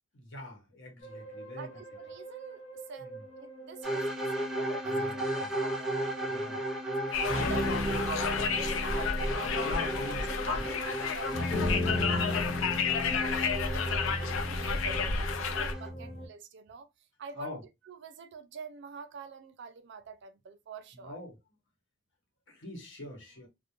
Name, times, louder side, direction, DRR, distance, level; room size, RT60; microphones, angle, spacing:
voice 1, 0.1-1.8 3.0-3.2 4.9-5.1 5.4-5.5 6.3-6.6 9.5-10.6 11.7-13.2 17.4-17.6 21.0-21.4 22.5-23.5, left 2 dB, 70° left, 1.0 m, -44 dB
sound 1, 1.0-16.3, left 1 dB, 35° left, 0.9 m, -37 dB
voice 2, 1.5-3.1 3.4-6.8 7.1-9.7 10.5-12.1 13.2-16.9 17.2-17.6 17.8-21.2, right 5 dB, 60° right, 0.4 m, -46 dB
sound 2, 3.8-15.9, right 1 dB, 5° right, 0.6 m, -36 dB
Conversation, 7.1-15.7, left 5 dB, 90° left, 0.4 m, -31 dB
2.3 x 2.0 x 2.9 m
head